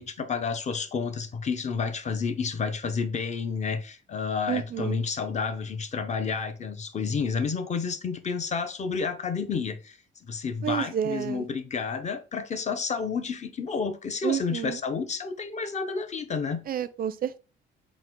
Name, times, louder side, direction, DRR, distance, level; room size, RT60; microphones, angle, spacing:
voice 1, 0.0-10.0 10.2-16.6, left 5 dB, 35° left, 0.6 m, -30 dB
voice 2, 4.5-5.0 10.6-11.5 14.2-14.8 16.7-17.4, right 9 dB, 50° right, 0.4 m, -30 dB
3.8 x 2.0 x 4.3 m
cardioid pair, 90°, 20 cm